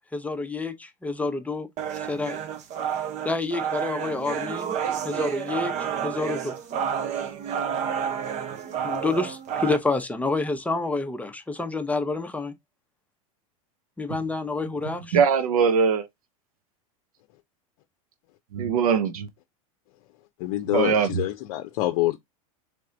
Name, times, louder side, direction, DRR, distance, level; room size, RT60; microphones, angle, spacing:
voice 1, 0.1-1.7 2.0-2.4 3.2-4.7 5.0-6.5 8.8-12.5 14.0-15.2, left 3 dB, 10° left, 0.8 m, -28 dB
sound 1, 1.8-9.8, right 8 dB, 40° right, 0.7 m, -30 dB
voice 2, 15.1-16.0 18.5-19.3 20.7-21.2, right 6 dB, 90° right, 0.7 m, -21 dB
voice 3, 20.4-22.2, left 16 dB, 65° left, 0.6 m, -26 dB
3.4 x 3.3 x 3.8 m
supercardioid pair, 110°, 18 cm